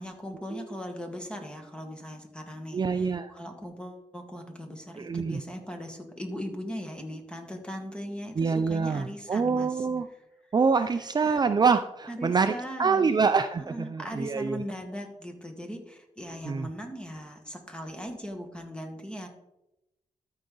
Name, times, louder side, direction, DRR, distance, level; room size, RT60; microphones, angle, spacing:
voice 1, 0.0-9.9 11.2-11.4 12.1-13.1 13.7-19.3, equal, 10° left, 3 dB, 1.7 m, -39 dB
voice 2, 2.7-3.3 5.0-5.4 8.4-10.1 10.5-12.5 12.8-14.6 16.4-16.7, right 5 dB, 35° right, 9 dB, 0.4 m, -25 dB
13.0 x 4.9 x 3.9 m, 0.90 s
cardioid pair, 85°, 12 cm